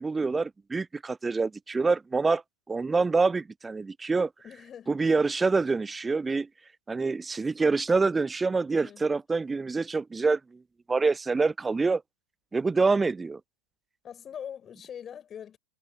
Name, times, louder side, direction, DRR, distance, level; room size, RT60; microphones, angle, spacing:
voice 1, 0.0-2.4 2.7-4.3 4.9-6.5 6.9-10.6 10.9-12.0 12.5-13.4, right 4 dB, 10° right, 0.5 m, -26 dB
voice 2, 4.4-5.0 8.8-9.3 14.0-15.6, left 8 dB, 25° left, 6.0 m, -43 dB
figure-of-eight pair, 90°, 0 cm